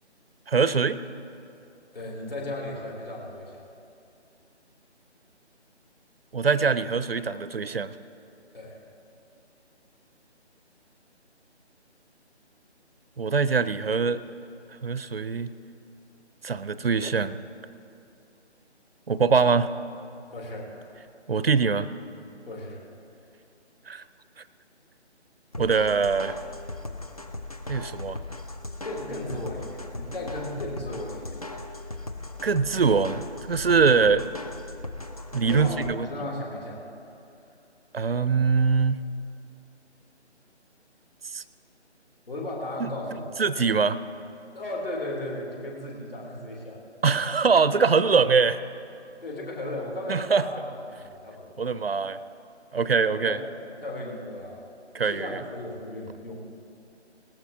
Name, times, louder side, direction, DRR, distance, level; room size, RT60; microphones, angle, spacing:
voice 1, 0.5-1.0 6.3-7.9 13.2-14.2 14.8-15.5 16.4-17.4 19.1-19.7 21.3-21.9 23.9-24.0 25.6-26.4 27.7-28.2 32.4-34.2 35.3-36.1 37.9-39.0 41.3-41.4 42.8-42.9 43.4-44.0 47.0-48.6 50.1-50.4 51.6-52.2 52.7-53.4 54.9-55.4, right 5 dB, 55° right, 15 dB, 0.6 m, -23 dB
voice 2, 1.9-3.6 8.5-8.8 20.3-20.9 22.5-22.8 28.8-31.4 35.5-35.8 36.1-36.8 42.3-43.2 44.5-46.8 49.2-51.6 53.1-54.6 55.0-56.3, left 1 dB, 50° left, -1 dB, 3.0 m, -35 dB
sound 1, 25.5-35.9, left 2 dB, 35° left, 0.5 m, -38 dB
19.0 x 15.0 x 2.7 m, 2.7 s
figure-of-eight pair, 155°, 35 cm